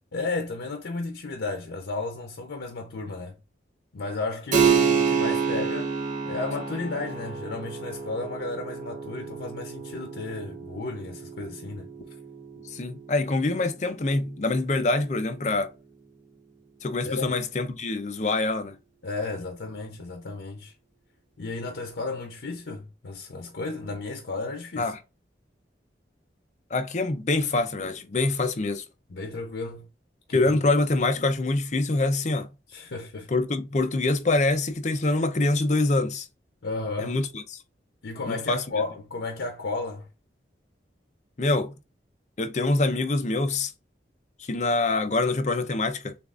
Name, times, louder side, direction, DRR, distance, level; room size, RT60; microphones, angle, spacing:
voice 1, 0.1-3.3 3.9-5.9 6.2-11.9 17.0-17.3 19.0-20.7 21.4-24.9 29.1-29.9 30.3-30.5 32.7-33.3 36.6-37.2 38.0-40.1, left 3 dB, 85° left, 0.7 m, -33 dB
Keyboard (musical), 4.5-14.7, right 6 dB, 45° right, 1.1 m, -29 dB
voice 2, 12.7-15.7 16.8-18.7 24.8-25.0 26.7-28.8 30.3-32.5 33.3-36.3 37.0-37.6 38.3-38.6 41.4-41.7 42.4-43.7 44.5-46.2, left 2 dB, 40° left, 0.5 m, -25 dB
6.8 x 2.4 x 2.5 m
head